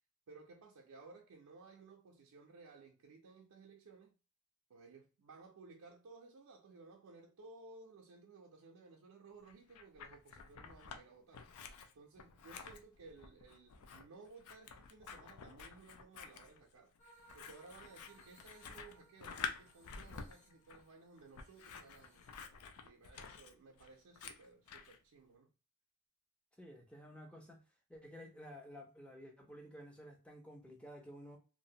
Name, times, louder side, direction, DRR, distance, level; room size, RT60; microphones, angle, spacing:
voice 1, 0.3-4.1 4.7-16.9 17.3-22.3 22.8-25.5, right 3 dB, 90° right, 0.4 m, -58 dB
Scissors, 9.5-11.0 11.3-25.0, left 6 dB, 85° left, 0.4 m, -50 dB
sound 1, 17.0-22.7, right 1 dB, 35° left, 0.8 m, -66 dB
voice 2, 26.6-27.6 27.9-31.4, equal, 5° left, 0.5 m, -53 dB
2.5 x 2.0 x 2.6 m
head